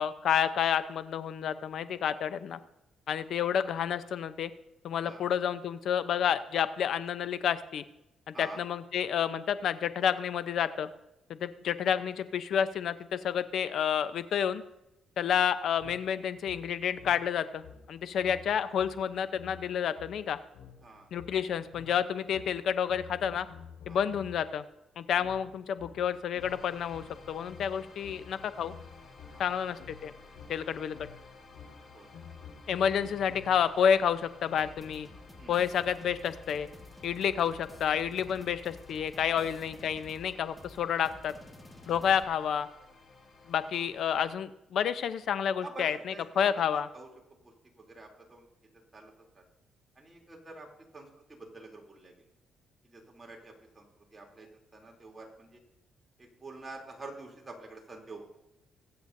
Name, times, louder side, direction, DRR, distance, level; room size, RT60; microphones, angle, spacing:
voice 1, 0.0-2.6 3.1-4.5 4.8-7.8 8.4-10.9 11.3-14.6 15.2-20.4 21.1-23.5 23.9-24.6 25.0-28.7 29.4-30.1 30.5-30.9 32.7-35.1 35.5-36.7 37.0-41.3 41.9-42.7 43.5-46.9, left 8 dB, 70° left, 12 dB, 0.7 m, -30 dB
sound 1, 15.8-24.5 25.2-33.8, left 7 dB, 85° left, 5.1 m, -51 dB
sound 2, 26.4-44.3, left 3 dB, 40° left, 2.8 m, -55 dB
voice 2, 29.3-29.8 31.9-32.4 35.4-35.7 39.4-39.6 41.8-42.0 45.6-47.1 47.4-48.5 48.9-49.4 49.9-50.7 50.9-52.1 52.8-55.6 56.2-58.2, right 2 dB, 25° right, -1 dB, 3.2 m, -48 dB
sound 3, 34.6-42.3, left 2 dB, 5° left, 1.7 m, -52 dB
22.5 x 8.0 x 2.7 m, 0.93 s
cardioid pair, 90°, 0 cm